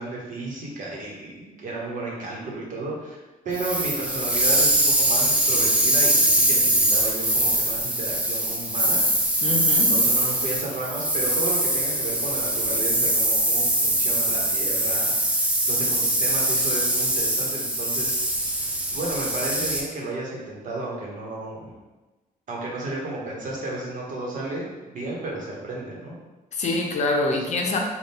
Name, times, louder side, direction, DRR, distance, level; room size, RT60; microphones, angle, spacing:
voice 1, 0.0-3.2 3.4-9.0 9.9-18.3 18.6-21.7 22.5-26.2 27.3-27.4, right 2 dB, 60° right, -3 dB, 1.0 m, -33 dB
sound 1, 3.6-19.8, right 1 dB, 10° right, 0.4 m, -22 dB
voice 2, 9.4-9.9 26.5-27.8, left 2 dB, 50° left, 1 dB, 0.5 m, -25 dB
3.6 x 2.3 x 4.2 m, 1.1 s
wide cardioid pair, 155°, 15 cm